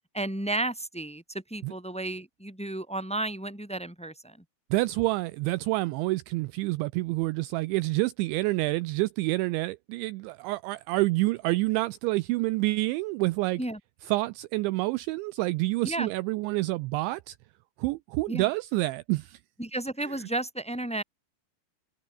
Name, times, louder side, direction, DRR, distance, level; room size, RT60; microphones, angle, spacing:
voice 1, 0.1-1.2 1.5-4.4 13.6-13.8 15.8-16.1 18.3-18.5 19.6-21.0, right 2 dB, ahead, 3.5 m, -32 dB
voice 2, 4.7-13.6 14.0-17.4 17.8-19.4 20.0-20.3, right 21 dB, 85° right, 2.6 m, -28 dB
omnidirectional pair, 6.0 m